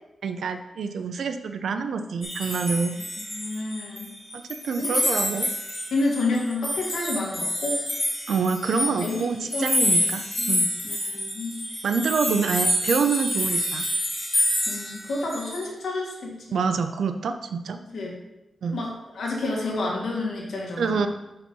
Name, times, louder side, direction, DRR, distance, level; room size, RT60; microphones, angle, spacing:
voice 1, 0.2-3.0 4.3-5.5 8.3-10.7 11.8-13.9 16.5-17.8 18.6-18.8 20.8-21.1, right 5 dB, 85° right, 7 dB, 0.5 m, -26 dB
sound 1, 2.2-4.1 4.3-15.7, left 1 dB, 15° left, 1.7 m, -27 dB
voice 2, 3.3-4.1 4.8-4.9 5.9-7.8 9.0-10.1 10.4-10.6 10.8-11.6 14.7-16.4 17.9-18.2 18.7-21.1, left 2 dB, 85° left, -2 dB, 1.9 m, -30 dB
5.7 x 5.6 x 5.3 m, 0.96 s
wide cardioid pair, 155°, 0 cm